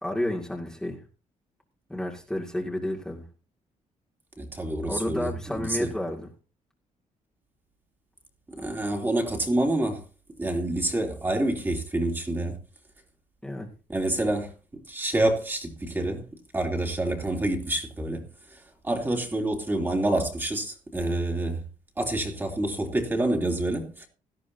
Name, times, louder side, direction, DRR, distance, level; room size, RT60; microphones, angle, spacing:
voice 1, 0.0-1.0 1.9-3.3 4.9-6.3 13.4-13.7, left 1 dB, 5° left, 2.2 m, -31 dB
voice 2, 4.4-5.3 5.6-5.9 8.6-10.0 10.4-12.6 13.9-14.5 14.9-16.3 16.5-18.2 18.8-21.6 22.0-24.1, right 1 dB, 15° right, 2.8 m, -27 dB
17.5 x 12.5 x 2.7 m
cardioid pair, 135°, 13 cm